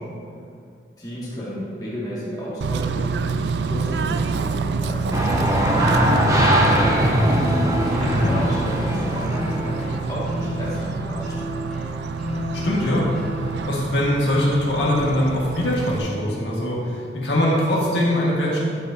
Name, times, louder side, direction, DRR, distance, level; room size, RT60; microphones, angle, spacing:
voice 1, 1.0-5.3 5.6-7.4 7.7-11.8, equal, 20° left, -8 dB, 2.0 m, -33 dB
Bird / Train, 2.6-16.0, right 5 dB, 70° right, 0.3 m, -28 dB
sound 1, 5.1-10.2, equal, 20° right, 0.7 m, -21 dB
sound 2, 7.9-13.6, left 1 dB, ahead, 1.8 m, -32 dB
voice 2, 8.0-8.3 12.6-13.1 13.4-18.6, left 1 dB, 80° left, -5 dB, 1.8 m, -22 dB
9.4 x 7.8 x 2.8 m, 2.3 s
head